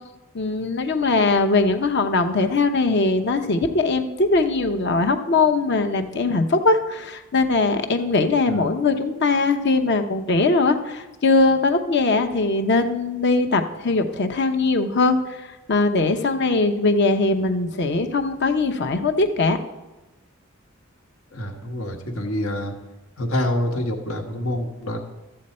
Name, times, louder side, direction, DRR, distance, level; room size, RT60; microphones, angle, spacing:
voice 1, 0.3-15.4 15.7-19.6, left 3 dB, 55° left, 6 dB, 0.8 m, -21 dB
voice 2, 21.3-22.7 23.2-25.0, left 1 dB, 80° left, 4 dB, 1.3 m, -26 dB
13.5 x 7.7 x 4.3 m, 1.1 s
head